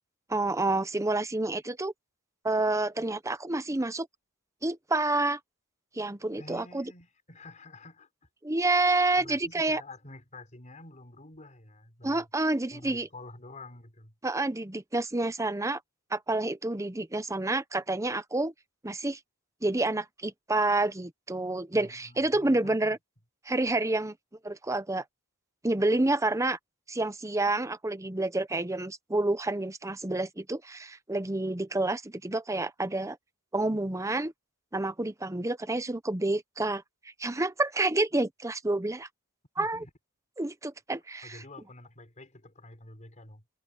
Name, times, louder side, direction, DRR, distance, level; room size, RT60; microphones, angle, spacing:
voice 1, 0.3-1.9 2.4-4.1 4.6-5.4 6.0-6.8 8.4-9.8 12.0-13.1 14.2-15.8 16.1-18.5 18.8-19.2 19.6-23.0 23.5-24.1 24.4-25.0 25.6-26.6 26.9-33.2 33.5-34.3 34.7-36.8 37.2-39.1 39.6-39.8 40.4-41.4, right 2 dB, 15° right, 0.8 m, -28 dB
voice 2, 6.4-8.1 9.2-12.3 12.7-14.1 21.7-23.0 39.6-39.9 41.2-43.4, left 2 dB, 35° left, 4.0 m, -48 dB
head